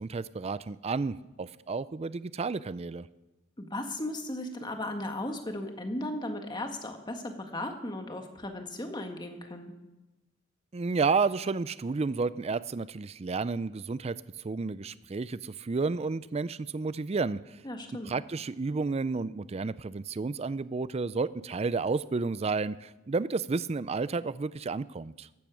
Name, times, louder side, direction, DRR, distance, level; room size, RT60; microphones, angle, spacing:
voice 1, 0.0-3.1 10.7-14.2 14.4-17.6 18.0-25.3, right 4 dB, 30° right, 16 dB, 0.4 m, -31 dB
voice 2, 3.6-9.7 17.6-18.1, left 1 dB, 20° left, 5 dB, 1.7 m, -36 dB
15.0 x 12.0 x 6.2 m, 1.1 s
head